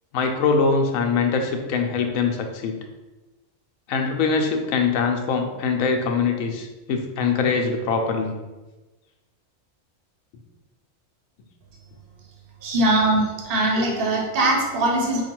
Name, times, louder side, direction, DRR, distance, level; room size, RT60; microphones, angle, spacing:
voice 1, 0.1-2.8 3.9-8.4, left 5 dB, 85° left, 4 dB, 1.0 m, -23 dB
voice 2, 12.6-15.2, right 2 dB, 50° right, 0 dB, 1.0 m, -21 dB
4.9 x 2.3 x 4.4 m, 1.2 s
omnidirectional pair, 1.4 m